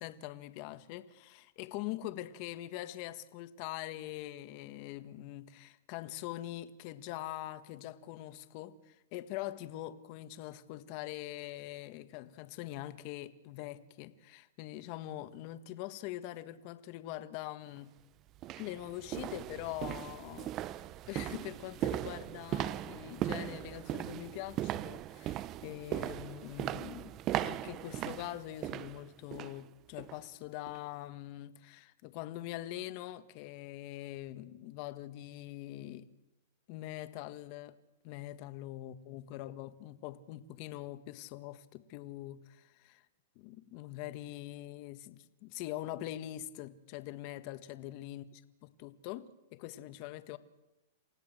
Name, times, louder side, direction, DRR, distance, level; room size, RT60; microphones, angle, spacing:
voice 1, 0.0-17.9 18.6-20.8 21.1-36.1 36.7-37.8 38.0-43.0 43.3-50.4, left 14 dB, 45° left, 1.5 m, -43 dB
sound 1, 17.7-17.8 18.4-29.6 30.0-30.2 30.7-30.8, right 13 dB, 35° right, 0.7 m, -38 dB
28.5 x 16.5 x 7.8 m
hypercardioid pair, 130°, 0 cm